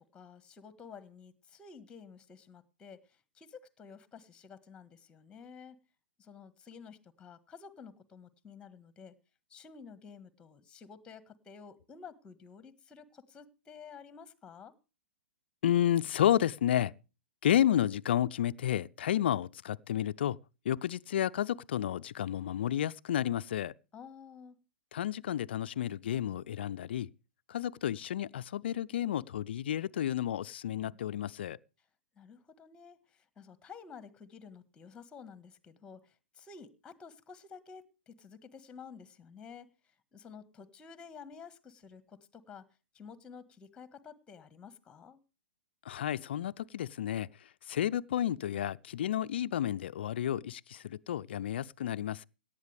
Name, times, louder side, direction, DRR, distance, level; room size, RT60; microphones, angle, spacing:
voice 1, 0.0-3.0 3.3-5.8 6.2-9.2 9.5-14.7 23.9-24.6 30.8-31.0 32.2-39.7 40.1-42.6 42.9-45.2, left 6 dB, 15° left, 1.6 m, -51 dB
voice 2, 15.6-16.9 17.4-20.4 20.6-23.7 24.9-27.1 27.5-31.6 45.8-52.3, left 11 dB, 60° left, 0.5 m, -31 dB
17.5 x 11.5 x 3.4 m
hypercardioid pair, 115°, 6 cm